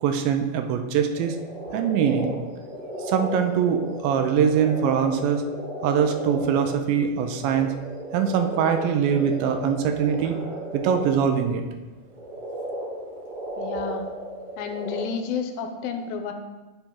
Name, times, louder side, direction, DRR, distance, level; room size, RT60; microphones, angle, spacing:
voice 1, 0.0-1.4 1.7-2.3 3.1-5.4 5.8-7.7 8.1-10.4 10.7-11.6, right 7 dB, 85° right, 7 dB, 2.3 m, -23 dB
sound 1, 1.1-11.5 12.0-15.0, right 1 dB, 50° right, 2.8 m, -35 dB
voice 2, 13.6-14.1 14.6-16.3, left 6 dB, 80° left, 6 dB, 2.3 m, -31 dB
7.3 x 5.2 x 3.7 m, 1.2 s
omnidirectional pair, 4.1 m